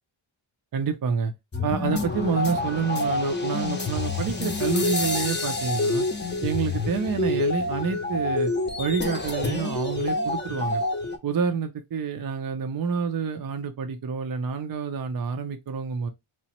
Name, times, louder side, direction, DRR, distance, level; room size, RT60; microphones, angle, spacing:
voice 1, 0.7-1.3 1.6-6.1 6.4-8.5 8.8-10.8 11.2-16.1, right 6 dB, 45° right, 0.5 m, -28 dB
sound 1, 1.5-11.2, left 2 dB, 20° left, 0.6 m, -27 dB
2.9 x 2.1 x 2.9 m
cardioid pair, 45°, 50 cm